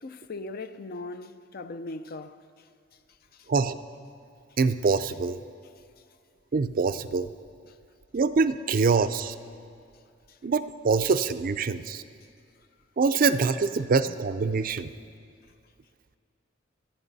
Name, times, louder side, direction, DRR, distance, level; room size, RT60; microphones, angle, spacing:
voice 1, 0.0-2.4 3.3-3.5 10.3-10.4, left 2 dB, 55° left, 0.5 m, -39 dB
voice 2, 4.6-5.4 6.5-7.3 8.1-9.3 10.4-12.0 13.0-14.9, right 4 dB, 50° right, 0.4 m, -24 dB
25.5 x 9.0 x 4.0 m
head